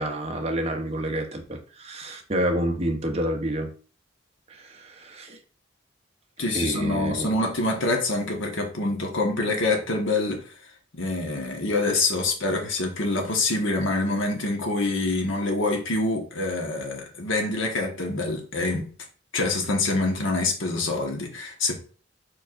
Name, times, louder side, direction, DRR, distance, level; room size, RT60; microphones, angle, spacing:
voice 1, 0.0-3.7 4.5-5.4 6.5-7.3, right 1 dB, 30° right, 0.8 m, -28 dB
voice 2, 6.4-10.4 10.9-18.9 19.3-21.8, left 2 dB, 75° left, 1.3 m, -26 dB
4.6 x 4.6 x 2.5 m
head